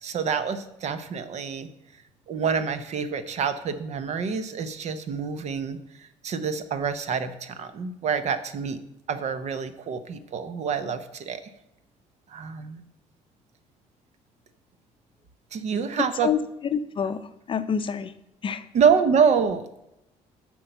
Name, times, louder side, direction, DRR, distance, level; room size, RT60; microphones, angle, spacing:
voice 1, 0.0-1.7 2.3-5.8 6.2-8.8 9.1-11.4 12.3-12.8 15.5-16.3 18.7-19.8, right 6 dB, 55° right, 11 dB, 0.8 m, -26 dB
voice 2, 16.0-16.4 16.7-18.1 18.4-18.7, left 7 dB, 40° left, 11 dB, 0.5 m, -27 dB
8.2 x 4.6 x 6.7 m, 0.86 s
cardioid pair, 95°, 14 cm